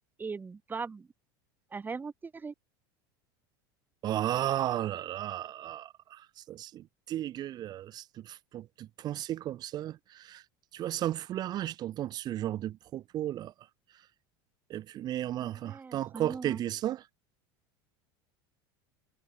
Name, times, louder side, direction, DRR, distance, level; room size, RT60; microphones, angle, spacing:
voice 1, 0.2-1.1 1.7-2.5 15.4-16.6, right 5 dB, 15° right, 0.9 m, -40 dB
voice 2, 4.0-10.4 10.7-13.5 14.7-17.1, right 12 dB, 35° right, 0.4 m, -34 dB
supercardioid pair, 120°, 12 cm